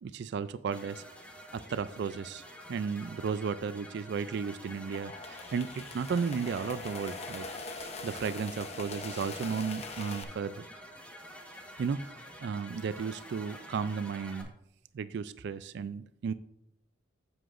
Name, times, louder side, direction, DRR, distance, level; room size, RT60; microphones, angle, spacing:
voice 1, 0.0-1.0 1.5-2.4 2.7-10.7 11.8-14.5 14.9-16.3, right 6 dB, 60° right, 14 dB, 0.3 m, -34 dB
sound 1, 0.7-14.4, equal, 5° left, 1.1 m, -49 dB
sound 2, 4.7-10.2, left 3 dB, 35° left, 0.7 m, -43 dB
9.8 x 7.8 x 2.5 m, 0.76 s
head